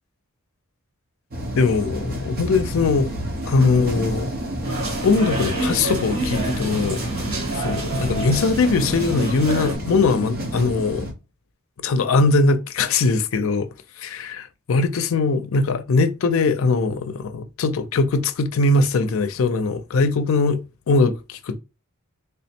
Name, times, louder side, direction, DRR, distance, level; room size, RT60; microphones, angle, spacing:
sound 1, 1.3-11.1, equal, 45° right, 0.8 m, -30 dB
voice 1, 1.6-3.1 3.5-4.3 5.0-7.0 7.6-11.1 11.8-13.7 14.0-21.6, left 3 dB, 65° left, 0.4 m, -21 dB
sound 2, 4.6-9.8, right 2 dB, 70° right, 1.8 m, -28 dB
3.4 x 2.0 x 4.2 m
head